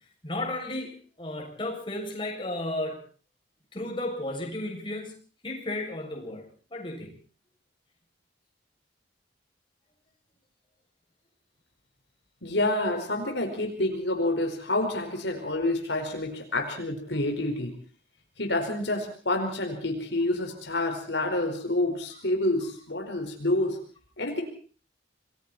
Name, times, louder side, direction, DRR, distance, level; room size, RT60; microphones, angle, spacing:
voice 1, 0.2-3.0 3.7-5.1 5.4-6.4 6.7-7.2, left 1 dB, 25° left, 0 dB, 7.3 m, -33 dB
voice 2, 12.4-17.7 18.4-23.8 24.2-24.4, left 2 dB, 70° left, 3 dB, 5.0 m, -28 dB
28.0 x 21.5 x 4.4 m, 0.42 s
head